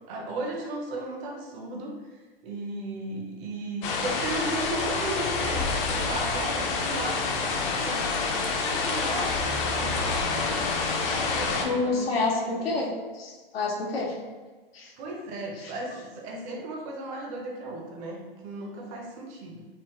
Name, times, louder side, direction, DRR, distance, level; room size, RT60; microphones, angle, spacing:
voice 1, 0.1-7.2 7.6-9.4 9.7-10.7 11.1-12.8 15.0-19.6, right 2 dB, 30° right, -1 dB, 0.5 m, -36 dB
sound 1, 3.8-11.6, left 4 dB, 35° left, 0.4 m, -27 dB
voice 2, 11.6-12.9 13.1-14.2 14.7-14.9 15.6-15.7, left 3 dB, 80° left, -1 dB, 0.8 m, -28 dB
3.5 x 2.0 x 2.9 m, 1.3 s
hypercardioid pair, 115°, 29 cm